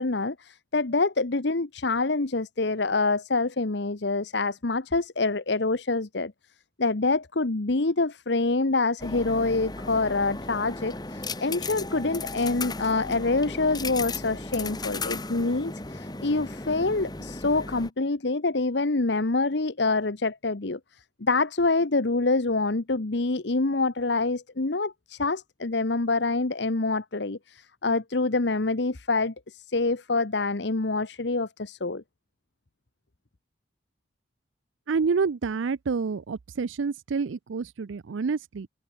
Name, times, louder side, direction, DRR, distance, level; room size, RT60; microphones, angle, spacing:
voice 1, 0.0-6.3 6.8-32.0, left 3 dB, 65° left, 1.0 m, -26 dB
sound 1, 9.0-17.9, left 3 dB, 20° left, 1.5 m, -35 dB
voice 2, 34.9-38.7, right 5 dB, 80° right, 0.5 m, -28 dB
head